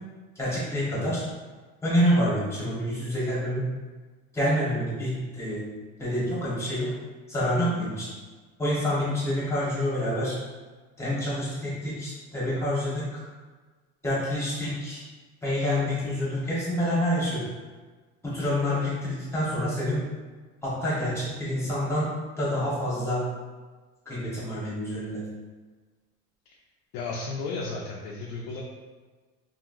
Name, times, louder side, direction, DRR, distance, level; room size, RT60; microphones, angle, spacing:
voice 1, 0.4-1.2 1.8-3.6 4.3-5.6 6.0-6.9 7.3-8.1 8.6-10.3 11.0-13.2 14.0-15.0 15.4-17.4 18.2-20.0 20.6-22.1 22.4-23.2 24.1-25.2, equal, 10° left, -8 dB, 1.0 m, -27 dB
voice 2, 26.9-28.6, left 3 dB, 80° left, -2 dB, 0.5 m, -33 dB
2.8 x 2.8 x 2.5 m, 1.4 s
cardioid pair, 155°, 30 cm